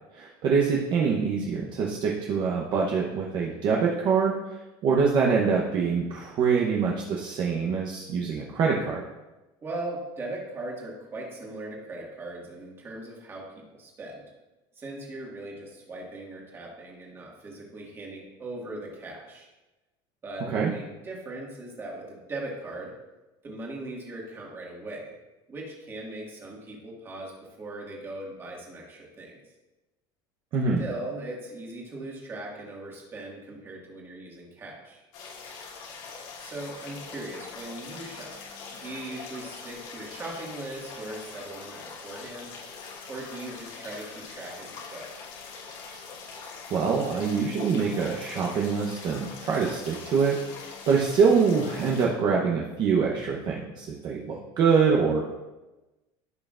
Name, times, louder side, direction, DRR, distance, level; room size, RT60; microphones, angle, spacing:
voice 1, 0.1-9.0 20.5-20.7 30.5-30.8 46.7-50.4 50.9-55.3, right 5 dB, 40° right, -2 dB, 0.9 m, -25 dB
voice 2, 9.6-14.3 14.8-19.5 20.2-22.9 23.4-25.1 25.5-27.3 27.6-29.4 30.8-35.1 36.4-38.4 38.7-42.5 43.1-45.1, right 2 dB, 20° right, -2 dB, 1.9 m, -39 dB
sound 1, 35.1-52.1, left 5 dB, 80° left, 2.8 m, -42 dB
15.0 x 5.6 x 2.5 m, 1.1 s
cardioid pair, 170°, 11 cm